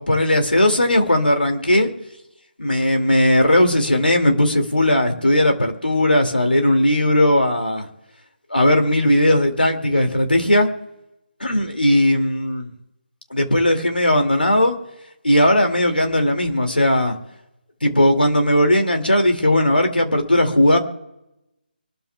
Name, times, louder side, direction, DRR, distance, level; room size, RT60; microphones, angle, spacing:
voice 1, 0.0-1.9 2.6-7.9 8.5-10.7 11.4-12.7 13.3-14.8 15.2-17.2 17.8-20.8, left 1 dB, 75° left, 4 dB, 2.4 m, -17 dB
25.0 x 13.0 x 2.3 m, 0.91 s
figure-of-eight pair, 150°, 5 cm